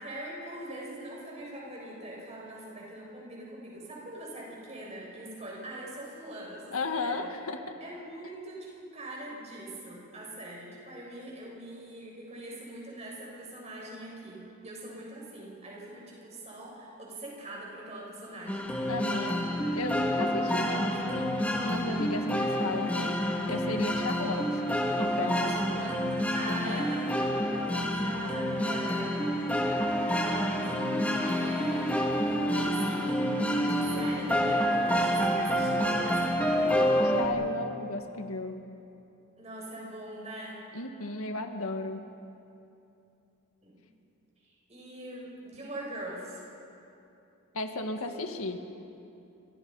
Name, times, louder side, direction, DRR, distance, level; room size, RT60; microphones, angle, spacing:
voice 1, 0.0-7.2 7.8-18.8 25.5-26.0 26.3-29.3 29.9-32.0 32.5-36.7 39.4-40.6 43.6-43.8 44.4-46.4 48.0-48.1, right 1 dB, 30° right, -3 dB, 7.4 m, -42 dB
voice 2, 6.7-7.8 18.9-23.2 23.5-24.6 25.0-25.6 26.5-26.9 37.0-38.6 40.7-42.1 47.5-48.6, left 2 dB, 90° left, 5 dB, 1.9 m, -35 dB
sound 1, 18.5-37.3, equal, 5° left, 2.5 m, -28 dB
29.5 x 27.0 x 5.6 m, 2.8 s
head